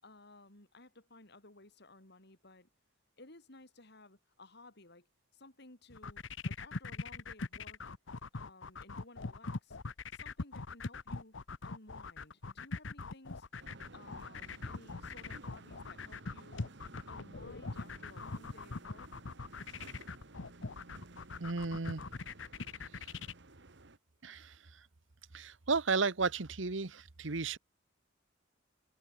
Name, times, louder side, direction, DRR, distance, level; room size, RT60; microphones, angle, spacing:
voice 1, 0.0-2.7 3.2-5.1 5.3-7.8 8.3-9.8 10.1-11.4 11.6-13.5 13.9-16.7 17.1-19.1, left 2 dB, 60° left, 4.8 m, -57 dB
sound 1, 5.9-23.3, left 3 dB, 80° left, 1.0 m, -42 dB
sound 2, 13.6-24.0, right 2 dB, 65° right, 1.7 m, -55 dB
voice 2, 21.4-22.0 24.2-24.5 25.3-27.6, right 4 dB, 80° right, 1.2 m, -33 dB
head